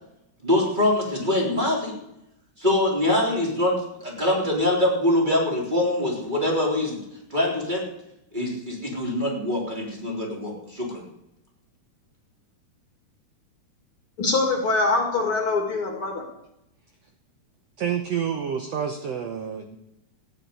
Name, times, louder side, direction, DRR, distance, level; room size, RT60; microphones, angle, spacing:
voice 1, 0.4-1.9 2.6-3.8 4.0-7.0 7.3-7.8 8.3-11.0, left 1 dB, 15° right, -2 dB, 3.5 m, -24 dB
voice 2, 14.2-16.2, left 3 dB, 45° left, 2 dB, 2.6 m, -23 dB
voice 3, 17.8-19.8, right 8 dB, 65° right, 5 dB, 1.8 m, -28 dB
15.0 x 9.9 x 8.2 m, 0.84 s
omnidirectional pair, 3.9 m